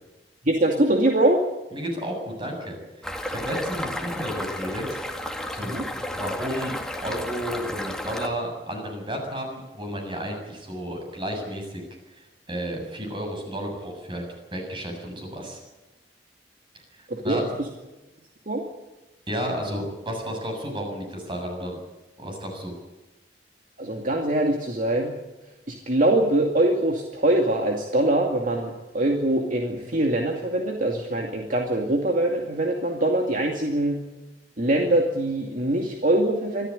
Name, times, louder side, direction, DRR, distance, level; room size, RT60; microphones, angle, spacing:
voice 1, 0.4-1.5 5.6-5.9 17.1-17.5 18.5-18.6 23.8-25.1 25.7-34.0 34.6-36.7, right 1 dB, 50° right, 2 dB, 2.4 m, -23 dB
voice 2, 1.7-5.0 5.5-5.8 6.1-6.7 7.0-11.8 12.1-14.2 14.5-15.6 17.0-17.5 19.3-21.8 22.2-22.7, equal, 30° right, 3 dB, 7.4 m, -32 dB
sound 1, 3.0-8.3, left 1 dB, 5° left, 2.1 m, -32 dB
25.5 x 14.0 x 9.9 m, 1.1 s
head